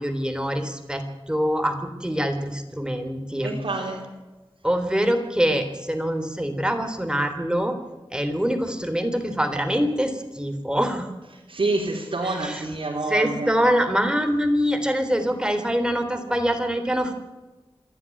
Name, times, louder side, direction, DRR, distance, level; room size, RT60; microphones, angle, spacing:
voice 1, 0.0-3.6 4.6-7.8 8.1-11.1 12.2-12.6 13.1-17.1, equal, 10° right, 7 dB, 3.6 m, -24 dB
voice 2, 3.4-4.0 11.5-13.6, right 2 dB, 70° right, -2 dB, 3.5 m, -27 dB
27.0 x 11.0 x 9.8 m, 1.1 s
wide cardioid pair, 60°, 9 cm